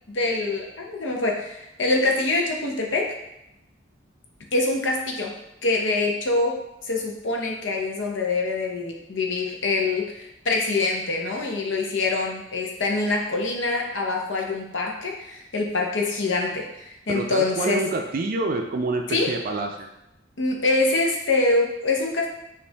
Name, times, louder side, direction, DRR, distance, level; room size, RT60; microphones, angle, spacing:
voice 1, 0.1-3.2 4.5-17.9 19.1-19.4 20.4-22.3, left 3 dB, 75° left, 1 dB, 0.8 m, -25 dB
voice 2, 17.1-19.9, right 3 dB, 50° right, 3 dB, 0.4 m, -27 dB
5.3 x 2.6 x 3.3 m, 0.87 s
head